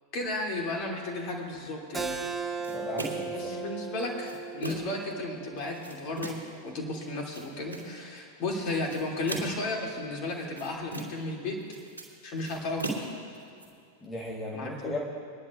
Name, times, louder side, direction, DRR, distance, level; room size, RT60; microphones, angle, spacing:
voice 1, 0.1-2.2 3.3-11.6 12.2-12.9 14.5-15.0, left 2 dB, 40° left, 0 dB, 2.9 m, -34 dB
Keyboard (musical), 1.9-7.1, right 4 dB, 15° right, 1.1 m, -37 dB
sound 1, 2.6-3.4 4.0-5.0 5.6-6.6 7.1-8.0 8.7-9.7 10.3-11.3 11.6-13.7, right 2 dB, 90° left, 3.0 m, -38 dB
voice 2, 2.7-3.6 14.0-15.0, left 2 dB, 15° left, -3 dB, 1.6 m, -37 dB
25.5 x 11.0 x 2.6 m, 2.4 s
figure-of-eight pair, 90°, 0 cm